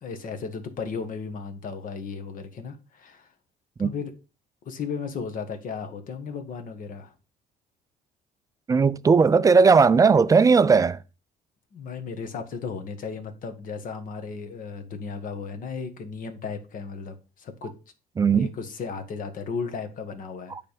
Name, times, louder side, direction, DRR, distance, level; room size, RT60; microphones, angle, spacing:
voice 1, 0.0-3.3 3.8-4.1 4.6-7.1 11.7-17.7 18.3-20.5, left 5 dB, 55° left, 1.5 m, -35 dB
voice 2, 8.7-11.0 18.2-18.5 20.5-20.6, right 5 dB, 20° right, 0.4 m, -17 dB
9.0 x 3.5 x 5.1 m
cardioid pair, 110°, 17 cm